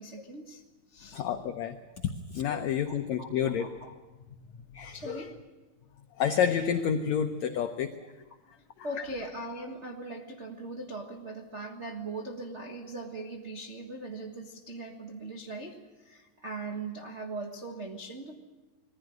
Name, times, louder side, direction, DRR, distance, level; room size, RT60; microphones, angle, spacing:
voice 1, 0.0-1.2 2.9-3.9 4.9-5.4 8.8-18.4, right 2 dB, 90° right, 0 dB, 0.6 m, -40 dB
voice 2, 1.1-1.8 2.3-3.7 4.5-5.2 6.2-7.9, left 8 dB, 75° left, 7 dB, 1.7 m, -29 dB
21.5 x 15.5 x 9.2 m, 1.2 s
omnidirectional pair, 4.1 m